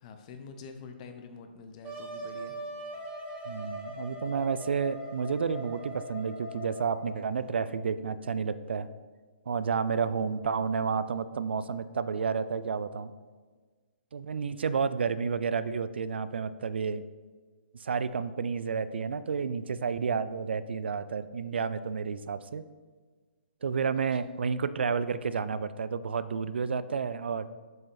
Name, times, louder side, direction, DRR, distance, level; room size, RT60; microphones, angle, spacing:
voice 1, 0.0-2.6, left 5 dB, 40° left, 7 dB, 0.8 m, -46 dB
Wind instrument woodwind instrument, 1.8-7.3, right 1 dB, 25° right, 1.3 m, -41 dB
voice 2, 3.5-8.9 9.5-13.1 14.1-17.0 17.8-22.6 23.6-27.5, right 5 dB, 75° right, 14 dB, 0.4 m, -31 dB
7.5 x 5.3 x 3.9 m, 1.4 s
hypercardioid pair, 140°, 6 cm